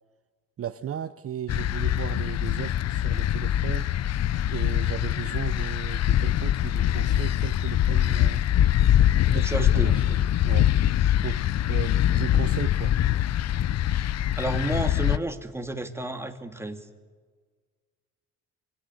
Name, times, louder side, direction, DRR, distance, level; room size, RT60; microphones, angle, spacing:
voice 1, 0.6-3.9 4.5-8.5 9.3-10.2 10.4-10.7 11.2-12.9, right 10 dB, 50° right, 12 dB, 0.8 m, -35 dB
sound 1, 1.5-15.2, left 11 dB, 60° left, 0.7 m, -23 dB
voice 2, 9.3-9.9 14.4-16.9, right 1 dB, 10° right, 6 dB, 2.3 m, -31 dB
26.0 x 17.0 x 9.7 m, 1.5 s
cardioid pair, 90°, 30 cm